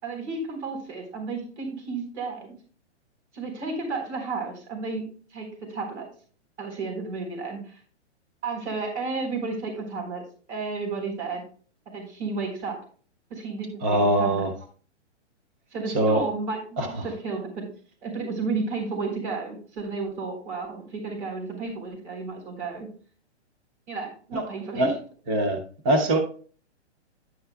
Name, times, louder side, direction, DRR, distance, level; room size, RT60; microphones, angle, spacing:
voice 1, 0.0-2.5 3.3-5.0 5.3-6.1 6.6-7.8 8.4-10.2 10.5-11.4 11.9-12.8 13.3-14.5 15.7-17.7 18.0-22.9 23.9-24.9, right 4 dB, 70° right, 3 dB, 3.8 m, -32 dB
voice 2, 13.8-14.5 15.9-16.2 16.8-17.1 24.3-24.4 24.8-24.9 25.3-26.2, right 1 dB, 10° right, 5 dB, 0.3 m, -23 dB
10.5 x 9.0 x 2.2 m, 0.42 s
hypercardioid pair, 150°, 35 cm